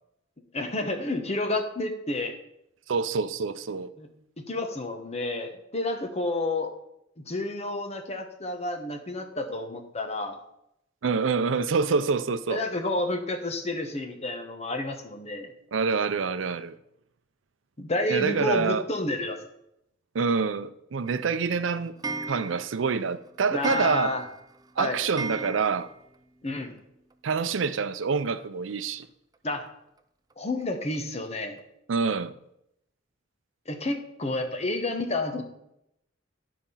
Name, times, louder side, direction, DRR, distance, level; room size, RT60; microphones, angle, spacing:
voice 1, 0.5-2.4 4.0-4.1 4.4-6.7 7.2-10.4 12.5-15.5 17.8-19.4 23.5-24.3 24.8-25.0 26.4-26.7 29.4-29.6 30.4-31.6 33.7-35.4, left 2 dB, 35° left, 1.1 m, -30 dB
voice 2, 2.9-3.9 11.0-12.6 15.7-16.8 18.1-18.8 20.1-22.0 22.3-24.2 24.8-25.9 27.2-29.1 31.9-32.3, right 5 dB, 85° right, 0.5 m, -26 dB
Clock, 21.1-26.2 26.5-26.6 26.8-26.9 27.1-27.2 28.4-28.5 29.0-29.1 29.7-29.8 30.3-30.4 30.9-31.0 31.6-31.7, right 3 dB, 20° right, 0.5 m, -37 dB
11.0 x 5.1 x 5.6 m
head